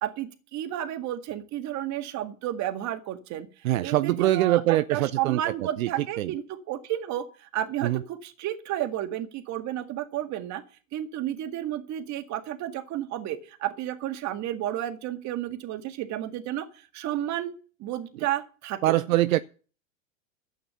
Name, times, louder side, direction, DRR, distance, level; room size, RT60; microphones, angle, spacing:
voice 1, 0.0-3.5 3.8-4.6 4.9-6.4 6.7-10.6 10.9-16.7 16.9-17.5 17.8-18.9, right 12 dB, 45° right, 2.0 m, -32 dB
voice 2, 3.6-6.3 7.8-8.0 18.1-18.3 18.8-19.4, right 15 dB, 80° right, 0.7 m, -24 dB
12.0 x 8.8 x 7.0 m
hypercardioid pair, 105°, 40 cm